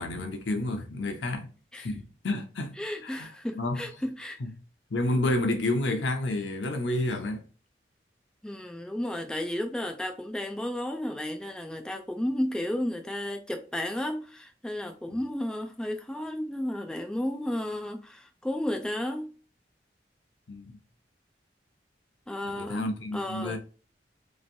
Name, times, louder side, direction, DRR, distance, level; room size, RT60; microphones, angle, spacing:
voice 1, 0.0-1.5 1.8-2.7 3.0-3.8 4.4-4.5 4.9-7.4 15.1-15.2 20.5-20.8 22.4-23.6, left 2 dB, 80° left, 0.7 m, -30 dB
voice 2, 2.8-4.4 8.4-19.3 22.3-23.6, left 1 dB, 5° left, 0.3 m, -33 dB
3.1 x 2.6 x 2.5 m
head